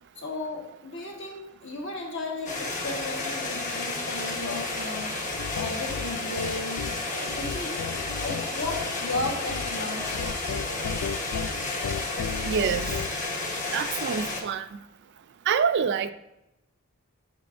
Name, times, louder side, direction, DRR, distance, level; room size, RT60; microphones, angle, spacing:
voice 1, 0.2-7.8 8.2-10.3, left 2 dB, 60° left, 0 dB, 1.4 m, -35 dB
sound 1, 2.5-14.4, left 2 dB, 35° left, 0.9 m, -32 dB
sound 2, 5.3-13.2, left 6 dB, 75° left, 0.3 m, -35 dB
voice 2, 12.4-12.9 13.7-14.8 15.5-16.1, right 6 dB, 50° right, 11 dB, 0.3 m, -26 dB
8.3 x 5.4 x 2.5 m, 0.90 s
head